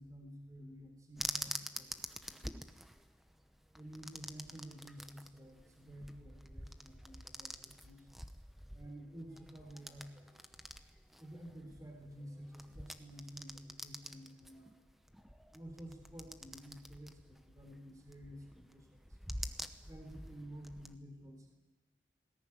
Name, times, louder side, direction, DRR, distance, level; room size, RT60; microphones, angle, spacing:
voice 1, 0.0-2.7 3.7-8.1 8.7-10.3 11.2-14.7 15.5-19.0 19.8-21.5, equal, 20° right, 2 dB, 3.6 m, -51 dB
sound 1, 1.2-21.0, equal, ahead, 0.9 m, -48 dB
21.0 x 18.0 x 9.9 m, 1.1 s
head